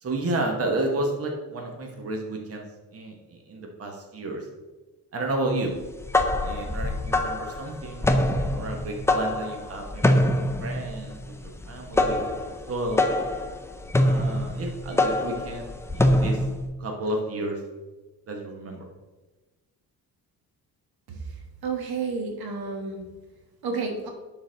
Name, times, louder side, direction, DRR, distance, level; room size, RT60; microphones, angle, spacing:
voice 1, 0.0-2.7 2.9-4.5 5.1-5.7 6.4-13.0 13.9-16.4 16.8-17.6 18.3-18.9, right 2 dB, 40° right, 2 dB, 1.1 m, -32 dB
sound 1, 5.8-16.6, left 1 dB, 10° left, 0.4 m, -24 dB
voice 2, 21.1-23.0 23.6-24.1, right 4 dB, 85° right, 2 dB, 1.5 m, -31 dB
11.0 x 4.0 x 3.8 m, 1.2 s
cardioid pair, 155°, 36 cm